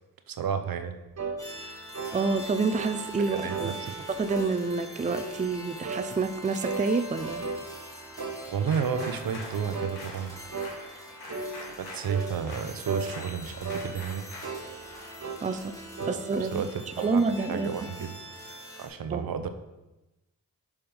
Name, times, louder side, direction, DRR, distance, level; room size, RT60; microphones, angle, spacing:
voice 1, 0.3-1.0 3.3-3.9 8.5-10.3 11.8-14.2 16.0-16.1 16.4-18.3 18.8-19.5, right 7 dB, 65° right, 9 dB, 0.7 m, -32 dB
sound 1, 1.2-1.4 1.9-2.2 2.7-3.0 3.5-3.7 4.3-4.5 5.1-5.3 5.8-6.1 6.6-7.7 8.2-8.4 8.9-9.2 9.7-10.0 10.5-10.8 11.3-11.6 12.1-12.3 12.9-13.1 13.6-13.9 14.4-14.7 15.2-15.4 16.0-16.2, right 4 dB, 45° right, 1.1 m, -34 dB
sound 2, 1.4-18.9, equal, 10° left, 2.0 m, -44 dB
voice 2, 2.1-3.7 4.1-7.5 15.4-15.7 16.1-16.7 17.0-17.7 19.1-19.3, right 4 dB, 20° right, 10 dB, 0.4 m, -28 dB
sound 3, 8.6-16.9, left 2 dB, 75° left, 1.6 m, -46 dB
6.9 x 3.5 x 5.4 m, 1.0 s
supercardioid pair, 40°, 38 cm